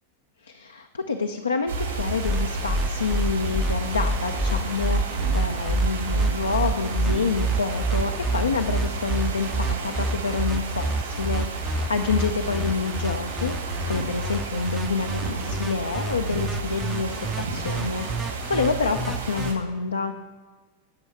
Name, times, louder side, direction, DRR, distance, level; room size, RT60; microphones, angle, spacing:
voice 1, 0.4-20.2, left 4 dB, 75° left, 5 dB, 0.5 m, -28 dB
sound 1, 1.7-19.5, right 3 dB, 70° right, 2.5 m, -32 dB
sound 2, 2.0-19.5, right 2 dB, ahead, 0.5 m, -28 dB
11.5 x 6.2 x 5.6 m, 1.4 s
figure-of-eight pair, 90°, 0 cm